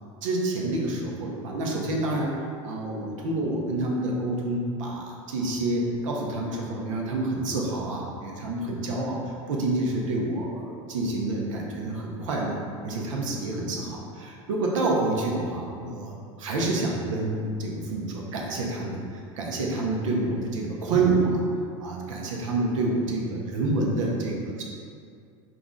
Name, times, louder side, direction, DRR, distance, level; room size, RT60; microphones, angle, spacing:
voice 1, 0.2-2.3 2.6-21.4 21.8-24.6, right 2 dB, 75° right, -1 dB, 0.8 m, -28 dB
4.9 x 2.5 x 3.7 m, 2.3 s
hypercardioid pair, 85°, 16 cm